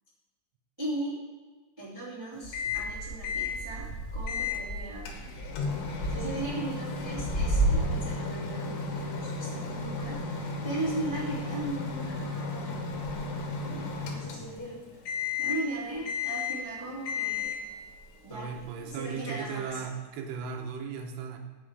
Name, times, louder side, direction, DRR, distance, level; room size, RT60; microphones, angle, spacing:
voice 1, 0.8-1.2 1.8-5.2 6.0-12.9 13.6-14.8 15.4-17.5 18.2-18.5 18.8-19.8, right 2 dB, 10° right, -9 dB, 1.7 m, -38 dB
sound 1, 2.4-8.2 8.5-15.6 15.9-16.7 17.3-19.2 19.6-20.0 20.7-20.8, right 1 dB, 15° left, 2.8 m, -35 dB
Microwave oven, 2.5-2.9 3.2-3.6 4.3-4.6 5.1-14.7 15.1-15.7 16.1-16.7 17.1-17.7, left 4 dB, 70° left, 3.1 m, -34 dB
voice 2, 18.3-21.4, right 6 dB, 75° right, 3 dB, 2.9 m, -36 dB
16.0 x 5.5 x 4.8 m, 1.4 s
omnidirectional pair, 5.4 m